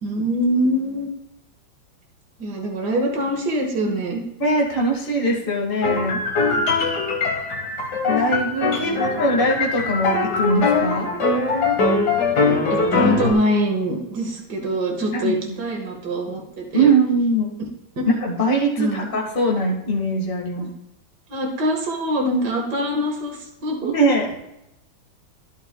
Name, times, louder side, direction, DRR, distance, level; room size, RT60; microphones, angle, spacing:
voice 1, 0.0-1.1 2.4-4.2 6.4-6.6 8.8-9.1 12.3-16.9 17.6-17.7 18.8-19.1 20.5-20.7 21.3-23.9, equal, 55° right, 1 dB, 2.3 m, -24 dB
voice 2, 4.4-6.2 8.1-11.1 15.1-15.6 16.7-17.5 18.2-20.7 23.8-24.4, right 2 dB, 25° left, -2 dB, 2.0 m, -21 dB
sound 1, 5.8-13.3, left 3 dB, 55° left, 2.0 m, -21 dB
13.0 x 11.0 x 2.3 m, 0.86 s
omnidirectional pair, 2.2 m